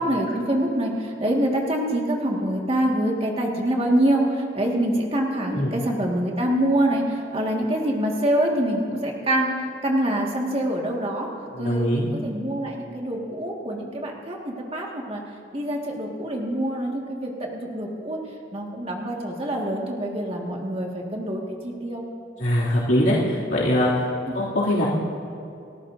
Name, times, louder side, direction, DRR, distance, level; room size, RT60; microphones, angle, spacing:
voice 1, 0.0-9.5 9.8-11.3 11.6-15.2 15.5-18.2 18.5-22.1, right 1 dB, 30° right, -1 dB, 1.9 m, -25 dB
voice 2, 11.5-12.1 22.4-24.1 24.3-24.8, left 1 dB, 65° left, -8 dB, 2.7 m, -22 dB
29.5 x 14.5 x 2.7 m, 2.6 s
head